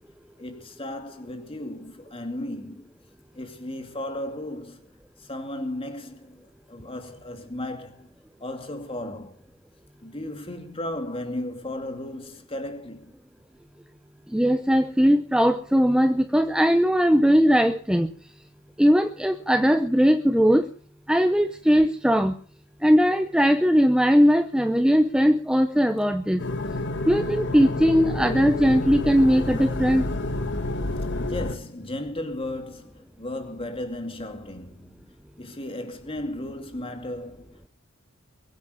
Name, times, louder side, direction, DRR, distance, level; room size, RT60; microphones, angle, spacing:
voice 1, 0.4-2.9 3.3-4.9 5.2-8.1 8.4-9.4 10.0-13.1 31.2-37.6, left 1 dB, 25° left, 2.6 m, -35 dB
voice 2, 14.3-18.1 18.8-20.7 21.1-22.3 22.8-26.4 27.1-30.0, equal, 5° right, 0.7 m, -19 dB
sound 1, 26.4-31.6, left 2 dB, 55° left, 1.7 m, -29 dB
22.5 x 9.2 x 6.4 m
head